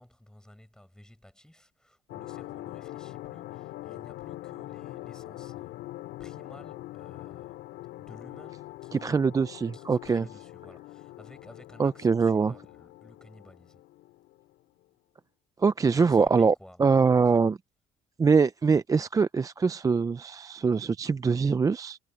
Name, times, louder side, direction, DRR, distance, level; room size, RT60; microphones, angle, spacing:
voice 1, 0.0-5.8 6.2-7.6 8.0-9.2 9.7-13.9 15.9-17.5, left 1 dB, 5° left, 6.6 m, -53 dB
sound 1, 2.1-14.6, left 17 dB, 85° left, 4.8 m, -43 dB
voice 2, 8.9-10.2 11.8-12.5 15.6-16.5 16.8-17.5 18.2-22.0, right 5 dB, 20° right, 0.4 m, -23 dB
cardioid pair, 110°, 17 cm